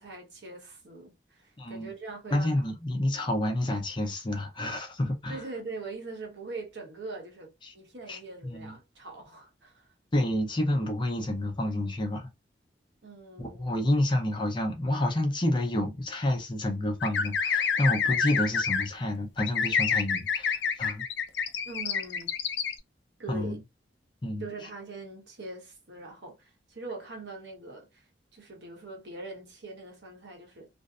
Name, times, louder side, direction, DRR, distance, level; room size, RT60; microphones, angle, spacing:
voice 1, 0.0-2.6 5.3-9.9 13.0-13.7 21.7-22.3 23.2-23.6 24.4-28.0 28.3-30.7, right 3 dB, 80° right, 0.9 m, -42 dB
voice 2, 1.6-1.9 2.3-5.4 7.6-7.7 8.1-8.7 10.1-12.3 13.4-21.0 23.3-23.6 24.2-24.5, left 1 dB, 25° left, 0.5 m, -29 dB
sound 1, 17.0-18.9 19.4-22.7, left 6 dB, 80° left, 0.4 m, -28 dB
2.6 x 2.0 x 2.4 m
head